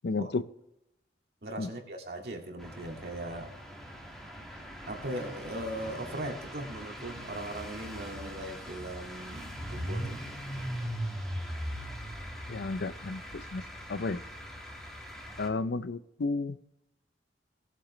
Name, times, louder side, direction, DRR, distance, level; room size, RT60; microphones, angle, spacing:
voice 1, 0.0-0.4 1.6-1.7 12.5-13.6 13.9-14.2 15.4-16.6, left 3 dB, 70° left, 15 dB, 0.5 m, -32 dB
voice 2, 1.4-3.5 4.9-10.2, right 1 dB, 60° right, 2 dB, 2.1 m, -39 dB
sound 1, 2.6-15.5, equal, ahead, 1.6 m, -40 dB
19.0 x 7.7 x 3.1 m, 0.87 s
head